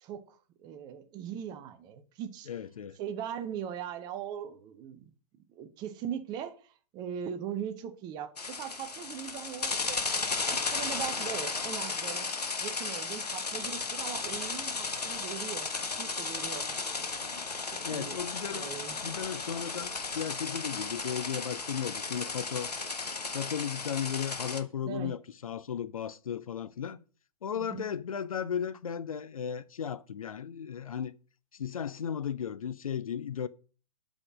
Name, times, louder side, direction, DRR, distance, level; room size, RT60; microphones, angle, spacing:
voice 1, 0.0-2.5 2.9-5.1 5.5-12.3 12.6-15.7 16.0-17.1 17.7-18.2 18.5-19.2 24.8-25.1 27.6-27.8, right 9 dB, 20° right, 0.7 m, -40 dB
voice 2, 2.5-3.0 17.3-17.5 17.8-18.7 19.0-22.7 23.3-27.0 27.4-31.1 31.5-33.5, left 8 dB, 60° left, 0.5 m, -35 dB
sound 1, 8.4-24.6, left 4 dB, 75° left, 0.9 m, -35 dB
5.8 x 5.0 x 6.1 m
figure-of-eight pair, 115°, 20 cm